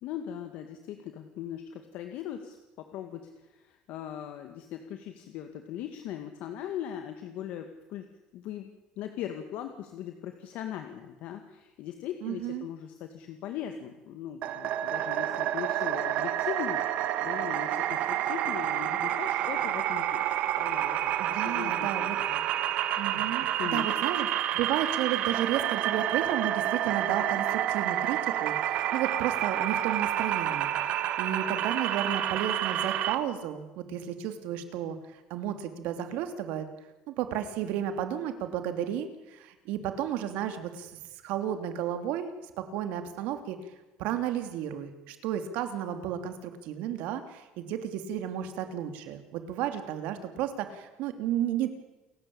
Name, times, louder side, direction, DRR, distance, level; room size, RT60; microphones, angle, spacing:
voice 1, 0.0-8.1 8.3-8.7 9.0-22.5 23.1-24.0, left 10 dB, 60° left, 6 dB, 2.1 m, -40 dB
voice 2, 12.2-12.7 21.2-22.2 23.0-24.3 24.5-36.7 37.1-42.3 42.6-43.6 44.0-51.7, right 10 dB, 70° right, 8 dB, 3.1 m, -33 dB
sound 1, 14.4-33.2, right 12 dB, 55° right, 1.6 m, -29 dB
29.0 x 15.0 x 8.9 m, 1.1 s
cardioid pair, 160°, 3 cm